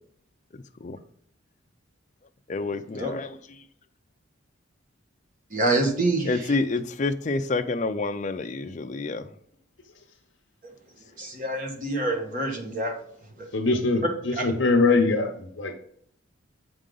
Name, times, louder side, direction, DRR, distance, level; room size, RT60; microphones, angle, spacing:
voice 1, 0.5-1.0 2.5-3.7 6.3-9.3, left 3 dB, 35° left, 0.4 m, -29 dB
voice 2, 5.5-6.5 11.2-12.9 14.4-14.5, right 2 dB, 40° right, 1.3 m, -26 dB
voice 3, 13.5-14.0 14.4-15.7, left 3 dB, 65° left, 0.8 m, -22 dB
7.5 x 4.9 x 3.8 m
head